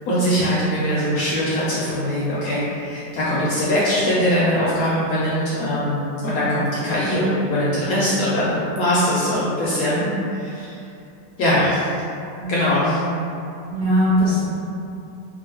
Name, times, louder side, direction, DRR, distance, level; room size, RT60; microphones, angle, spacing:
voice 1, 0.1-10.7 11.4-11.9 12.5-13.0, equal, 70° left, -8 dB, 0.9 m, -21 dB
voice 2, 12.4-12.8 13.7-14.4, left 1 dB, 55° right, -11 dB, 0.9 m, -20 dB
2.8 x 2.4 x 2.9 m, 2.6 s
omnidirectional pair, 1.9 m